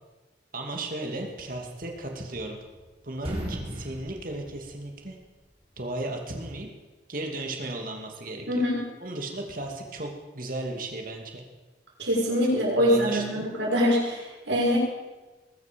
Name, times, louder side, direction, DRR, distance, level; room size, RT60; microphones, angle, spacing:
voice 1, 0.5-2.6 3.0-5.2 5.8-6.7 7.1-8.6 9.0-11.4 12.8-13.5, right 2 dB, 50° right, 2 dB, 2.6 m, -35 dB
sound 1, 2.4-2.8 3.1-5.3, equal, 35° right, 3.7 m, -37 dB
voice 2, 8.5-8.8 12.0-14.8, equal, 80° right, -4 dB, 6.4 m, -24 dB
21.0 x 12.5 x 5.3 m, 1.2 s
head